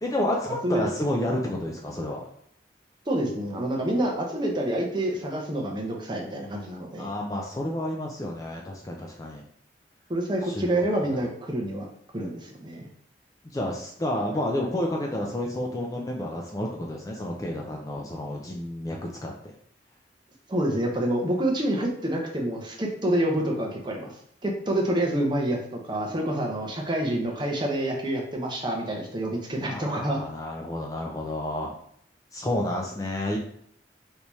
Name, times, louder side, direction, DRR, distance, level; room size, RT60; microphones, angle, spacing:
voice 1, 0.0-2.2 7.0-9.4 10.5-10.8 13.5-19.3 29.6-31.7 32.3-33.4, left 1 dB, 20° left, 0 dB, 0.3 m, -30 dB
voice 2, 3.1-7.1 10.1-11.9 12.1-12.9 20.5-24.1 24.4-25.6 25.9-30.2, right 1 dB, 25° right, 0 dB, 0.6 m, -27 dB
3.4 x 2.7 x 3.0 m, 0.69 s
head